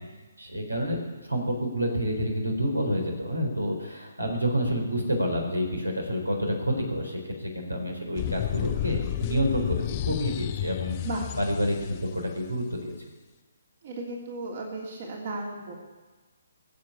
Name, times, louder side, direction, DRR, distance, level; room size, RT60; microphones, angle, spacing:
voice 1, 0.4-11.0 11.4-12.9, equal, 90° right, 2 dB, 4.4 m, -28 dB
sound 1, 8.2-12.1, left 13 dB, 30° left, 0.6 m, -31 dB
voice 2, 13.8-15.7, right 2 dB, 45° right, -1 dB, 3.1 m, -35 dB
22.0 x 7.6 x 8.5 m, 1.3 s
figure-of-eight pair, 140°, 0 cm